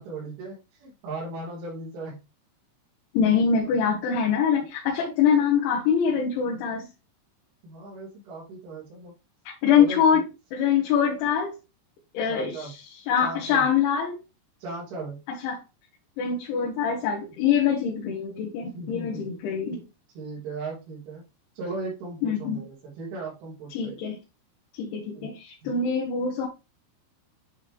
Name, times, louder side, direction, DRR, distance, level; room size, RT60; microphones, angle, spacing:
voice 1, 0.0-2.2 3.3-3.7 7.6-9.1 9.7-10.2 11.2-11.3 12.2-12.7 13.2-13.7 14.6-15.2 16.5-16.8 18.6-19.4 20.1-21.2 21.5-24.0 25.1-25.3 25.6-25.7, right 3 dB, 90° right, 4.8 m, -37 dB
voice 2, 3.1-6.9 9.6-10.2 10.5-11.5 12.2-12.6 13.1-14.2 15.4-15.6 16.2-19.8 22.2-22.6 23.8-24.2 24.8-26.5, left 7 dB, 85° left, 3.8 m, -24 dB
10.5 x 3.6 x 3.1 m
omnidirectional pair, 5.4 m